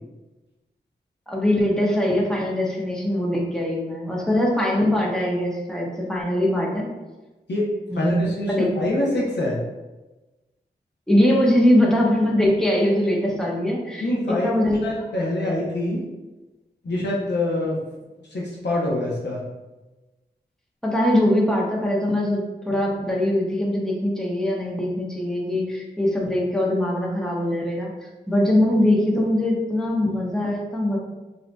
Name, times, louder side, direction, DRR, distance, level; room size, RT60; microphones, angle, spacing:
voice 1, 1.3-6.9 7.9-8.7 9.1-9.2 11.1-14.8 15.4-15.6 20.8-27.9 28.3-31.0, left 1 dB, 5° left, -3 dB, 1.0 m, -22 dB
voice 2, 7.9-9.6 14.0-14.5 14.8-16.0 16.8-17.8 18.3-19.4, left 1 dB, 70° left, -4 dB, 0.8 m, -25 dB
5.6 x 2.8 x 2.2 m, 1.1 s
wide cardioid pair, 70°, 18 cm